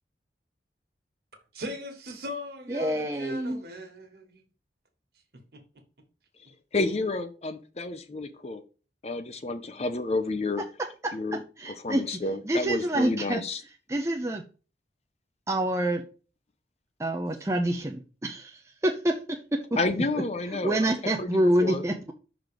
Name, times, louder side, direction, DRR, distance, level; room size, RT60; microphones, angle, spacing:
voice 1, 1.5-4.4 5.5-5.6, left 1 dB, 60° right, 1.5 m, -39 dB
voice 2, 2.7-3.6 11.0-12.2 12.4-13.4 13.9-14.4 15.5-16.0 17.0-19.6 20.6-22.1, right 1 dB, 15° right, 0.5 m, -27 dB
voice 3, 6.7-8.6 9.0-10.6 11.1-13.6 19.8-20.9 21.2-21.8, left 2 dB, 35° left, 0.6 m, -30 dB
6.0 x 3.9 x 5.1 m
head